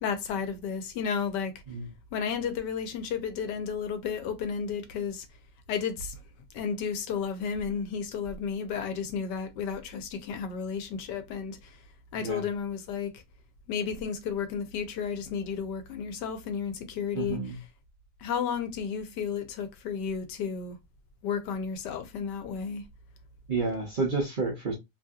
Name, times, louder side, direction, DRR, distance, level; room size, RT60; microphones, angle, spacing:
voice 1, 0.0-1.5 2.1-5.3 5.7-6.2 6.5-11.8 12.1-13.2 13.7-17.6 18.2-20.8 21.2-22.8, left 6 dB, 80° left, 1.2 m, -32 dB
voice 2, 17.1-17.6 23.5-24.7, right 3 dB, 60° right, 0.5 m, -30 dB
3.1 x 2.7 x 2.3 m
omnidirectional pair, 1.9 m